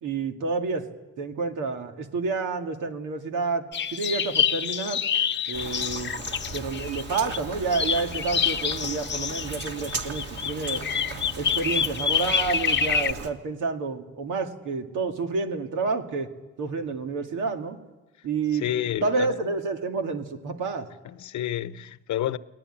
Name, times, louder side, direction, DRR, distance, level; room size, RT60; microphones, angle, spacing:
voice 1, 0.0-0.9 1.2-3.6 3.9-5.0 5.5-6.1 6.5-10.8 11.4-16.3 16.6-17.8 18.2-18.7 19.0-20.9, right 4 dB, 85° right, 2.2 m, -29 dB
sound 1, 3.7-7.4 7.7-13.1, left 7 dB, 35° left, 0.8 m, -27 dB
Rain, 5.5-13.3, right 3 dB, 50° right, 2.6 m, -37 dB
voice 2, 18.5-19.4 21.1-22.4, left 12 dB, 70° left, 0.9 m, -29 dB
21.0 x 19.0 x 10.0 m
cardioid pair, 90°, 30 cm